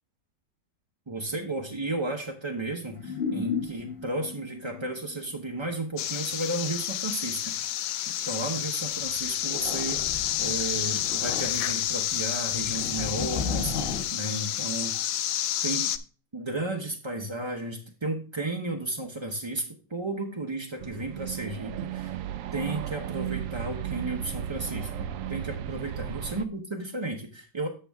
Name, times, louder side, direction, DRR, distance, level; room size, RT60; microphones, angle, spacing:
voice 1, 1.1-7.9 8.2-15.0 15.6-15.9 16.3-22.2 22.5-27.7, right 2 dB, 30° right, 1 dB, 0.5 m, -33 dB
sound 1, 2.9-5.3 5.6-5.7 9.0-14.0, left 5 dB, 35° left, 1.2 m, -35 dB
sound 2, 6.0-16.0, left 11 dB, 70° left, 0.8 m, -30 dB
sound 3, 20.8-26.5, right 10 dB, 70° right, 0.8 m, -35 dB
7.3 x 6.9 x 3.4 m, 0.37 s
omnidirectional pair, 1.8 m